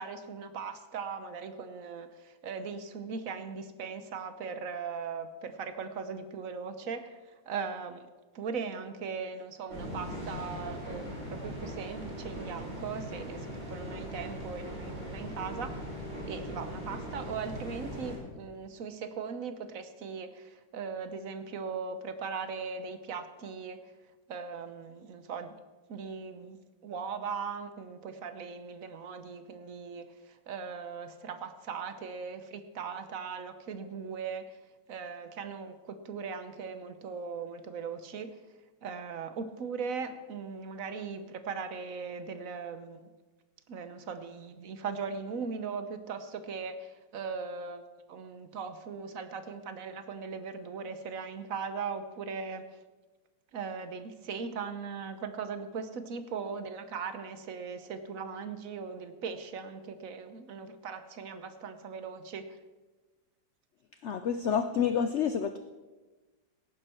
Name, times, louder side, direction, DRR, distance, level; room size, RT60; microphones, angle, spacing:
voice 1, 0.0-8.1 8.3-15.8 16.3-23.8 24.3-25.5 25.9-26.6 26.8-34.4 34.9-38.4 38.8-43.1 43.7-52.6 53.5-62.5, right 5 dB, 55° right, 10 dB, 1.1 m, -39 dB
sound 1, 9.7-18.2, equal, 40° right, 5.9 m, -40 dB
voice 2, 64.0-65.6, left 7 dB, 85° left, 9 dB, 0.6 m, -28 dB
17.5 x 10.0 x 4.4 m, 1.2 s
omnidirectional pair, 1.9 m